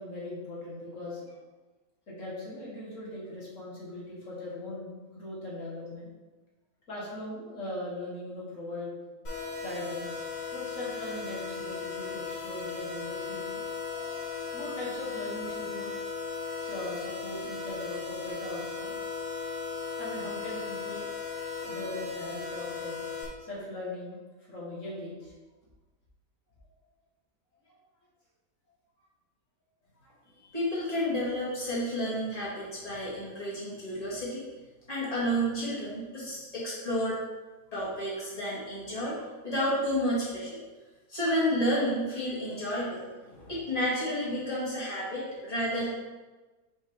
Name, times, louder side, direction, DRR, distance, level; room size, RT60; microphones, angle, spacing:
voice 1, 0.0-1.4 2.1-6.1 6.9-8.9 9.6-10.2 10.5-13.6 14.5-16.0 16.6-19.1 20.0-21.1 21.6-23.0 23.4-24.2 24.5-25.4 30.0-30.2 39.0-39.1, left 1 dB, 55° left, -5 dB, 2.0 m, -40 dB
sound 1, 9.2-23.2, left 5 dB, 80° left, 2.8 m, -37 dB
voice 2, 30.5-34.5 34.9-37.2 37.7-39.2 39.4-40.6 41.1-45.9, equal, 25° left, -8 dB, 2.1 m, -31 dB
5.4 x 5.3 x 3.6 m, 1.2 s
omnidirectional pair, 1.6 m